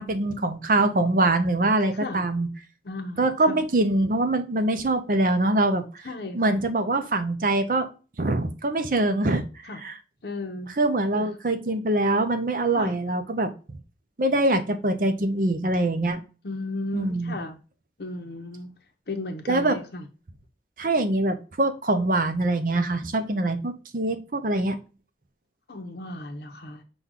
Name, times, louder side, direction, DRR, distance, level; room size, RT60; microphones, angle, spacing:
voice 1, 0.0-2.5 3.2-6.0 6.3-7.9 8.2-9.4 9.8-10.0 10.8-13.5 14.2-16.2 16.9-17.3 19.5-19.8 20.8-24.8, right 2 dB, 50° right, 0.6 m, -24 dB
voice 2, 1.9-2.2 2.8-3.6 6.0-6.7 9.7-9.8 10.2-10.7 11.1-11.3 12.8-12.9 16.4-17.6 18.0-18.7 19.1-20.0 25.7-26.8, left 2 dB, 65° left, 0.7 m, -34 dB
6.0 x 2.3 x 3.6 m
head